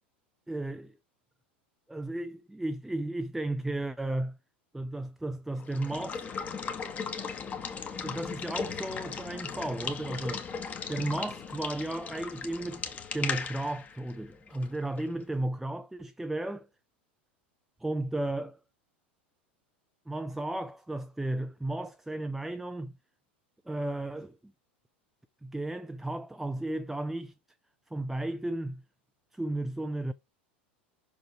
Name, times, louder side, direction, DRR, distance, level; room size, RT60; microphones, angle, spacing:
voice 1, 0.5-1.0 1.9-4.4 4.7-6.5 7.4-7.5 8.0-10.5 10.9-16.7 17.8-18.5 20.1-22.9 23.7-24.4 25.4-27.3 27.9-28.8 29.3-30.1, right 1 dB, 5° right, 0.5 m, -34 dB
Water / Water tap faucet / Liquid, 5.6-15.2, left 6 dB, 25° left, 1.5 m, -37 dB
6.2 x 5.1 x 4.5 m
figure-of-eight pair, 80°, 6 cm